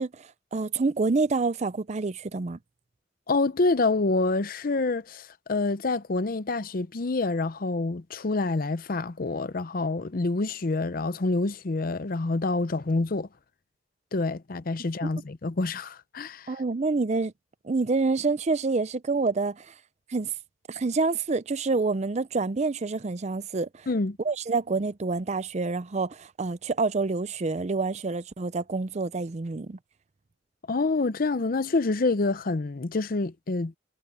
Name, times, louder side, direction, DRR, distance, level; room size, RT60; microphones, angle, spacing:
voice 1, 0.0-2.6 16.5-17.3 17.6-19.7 20.1-20.3 20.7-23.9 24.2-29.8, right 3 dB, 35° right, 0.5 m, -27 dB
voice 2, 3.3-13.3 14.1-16.5 23.9-24.2 30.7-33.7, left 3 dB, 50° left, 0.6 m, -27 dB
head